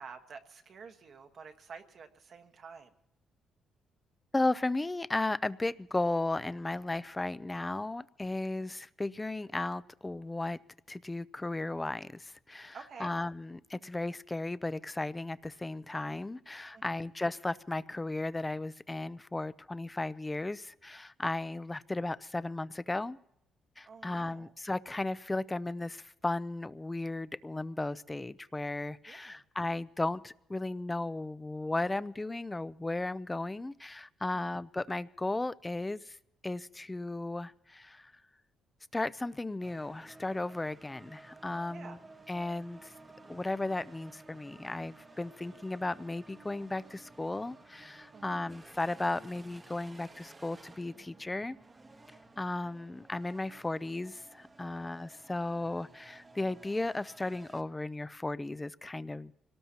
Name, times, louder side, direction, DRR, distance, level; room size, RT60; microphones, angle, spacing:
voice 1, 0.0-2.9 8.6-8.7 12.7-13.1 16.7-17.0 23.8-24.5 29.1-29.4 34.3-34.4 41.7-42.0 48.1-48.4, right 5 dB, 55° right, 5 dB, 1.3 m, -50 dB
voice 2, 4.3-10.6 10.9-23.2 23.8-36.2 36.4-38.1 38.9-42.0 42.3-42.9 43.3-51.6 52.4-59.3, left 2 dB, 15° left, 17 dB, 0.5 m, -35 dB
sound 1, 39.6-57.6, right 3 dB, 25° right, 1.0 m, -55 dB
25.5 x 18.5 x 2.9 m, 0.80 s
cardioid pair, 90°, 0 cm